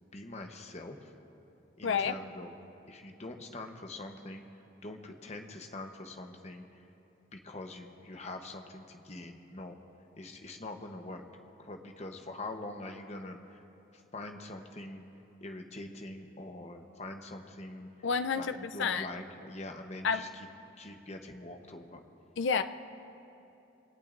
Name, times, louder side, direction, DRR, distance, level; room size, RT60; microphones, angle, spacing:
voice 1, 0.0-1.1 1.8-2.5 2.9-4.4 4.8-6.6 7.3-9.8 10.2-11.2 11.6-13.6 13.9-15.0 15.4-17.9 18.4-20.5 20.8-22.0, left 2 dB, 35° left, 4 dB, 0.9 m, -44 dB
voice 2, 1.8-2.2 18.0-19.1 20.0-20.3 22.4-22.6, left 6 dB, 65° left, 10 dB, 0.5 m, -29 dB
23.5 x 17.5 x 2.6 m, 2.9 s
head